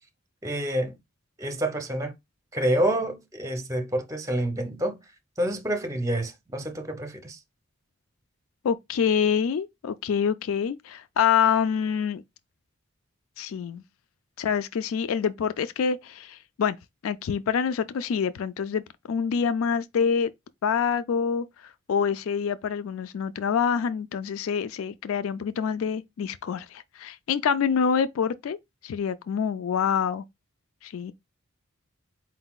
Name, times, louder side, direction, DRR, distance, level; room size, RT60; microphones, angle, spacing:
voice 1, 0.4-1.0 1.4-2.1 2.5-5.0 5.4-7.4, right 1 dB, 15° right, 0.7 m, -28 dB
voice 2, 8.6-12.2 13.4-13.8 14.4-16.8 17.0-18.8 19.1-20.3 20.6-21.5 21.9-28.6 28.8-30.2 30.8-31.1, left 7 dB, 80° left, 0.4 m, -26 dB
4.5 x 3.8 x 2.3 m
head